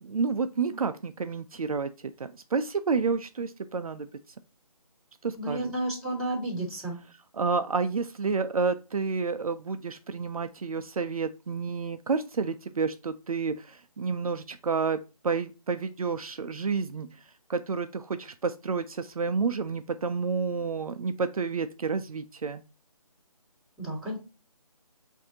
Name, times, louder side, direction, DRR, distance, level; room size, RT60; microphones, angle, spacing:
voice 1, 0.0-1.9 2.2-4.1 5.2-5.7 7.3-15.0 15.2-17.1 17.5-22.6, right 5 dB, 65° right, 10 dB, 0.4 m, -30 dB
voice 2, 5.4-7.0 23.8-24.2, right 1 dB, ahead, -11 dB, 2.0 m, -31 dB
6.2 x 2.7 x 2.7 m, 0.30 s
figure-of-eight pair, 155°, 19 cm